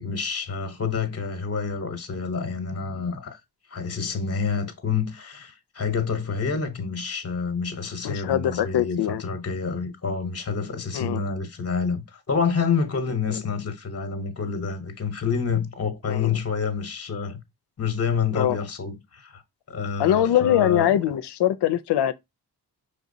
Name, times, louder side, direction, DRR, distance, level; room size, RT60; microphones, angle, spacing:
voice 1, 0.0-3.4 3.7-17.4 17.8-19.4 19.7-20.9, left 5 dB, 35° left, 1.0 m, -28 dB
voice 2, 8.0-9.2 10.9-11.2 13.3-13.4 16.1-16.4 18.3-18.6 20.0-22.1, left 11 dB, 80° left, 0.6 m, -22 dB
4.9 x 3.4 x 2.6 m
cardioid pair, 65°, 40 cm